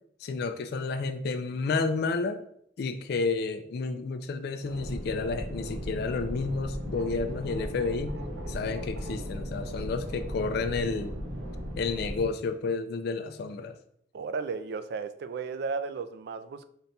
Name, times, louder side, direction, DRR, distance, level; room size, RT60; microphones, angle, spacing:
voice 1, 0.2-2.4 2.8-8.2 8.5-11.1 11.8-13.8, left 4 dB, 60° left, 0.3 m, -31 dB
sound 1, 4.6-12.3, equal, 90° right, 0.9 m, -36 dB
voice 2, 14.1-16.7, right 4 dB, 60° right, 0.3 m, -34 dB
3.9 x 2.2 x 4.0 m
head